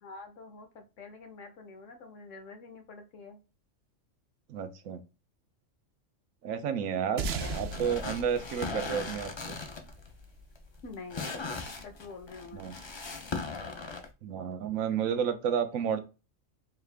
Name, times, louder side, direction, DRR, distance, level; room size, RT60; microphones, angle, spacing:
voice 1, 0.0-3.4 7.1-7.6 10.8-11.5 11.8-12.7, left 4 dB, 70° left, 6 dB, 1.2 m, -46 dB
voice 2, 4.5-5.0 6.4-7.3 7.5-9.5 12.5-12.8 14.2-16.0, right 7 dB, 90° right, 8 dB, 1.1 m, -31 dB
sound 1, 7.2-10.0, right 5 dB, 65° right, 0.7 m, -38 dB
sound 2, 7.3-14.1, left 4 dB, 50° left, 0.3 m, -39 dB
4.6 x 2.4 x 3.3 m, 0.29 s
omnidirectional pair, 1.4 m